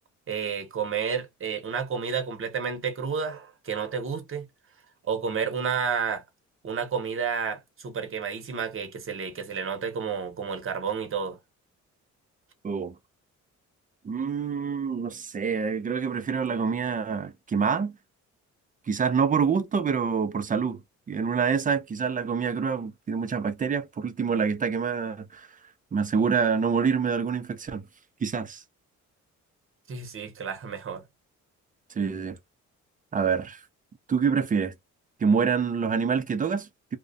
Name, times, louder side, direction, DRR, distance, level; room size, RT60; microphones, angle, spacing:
voice 1, 0.3-4.4 5.1-6.2 6.6-11.4 29.9-31.0, right 6 dB, 45° right, 0.9 m, -31 dB
voice 2, 12.6-13.0 14.0-17.9 18.9-20.8 21.1-25.5 25.9-27.8 28.2-28.6 32.0-32.4 33.1-33.6 34.1-34.7 35.2-37.0, right 6 dB, 25° right, 0.4 m, -26 dB
2.4 x 2.1 x 2.5 m
cardioid pair, 90°, 30 cm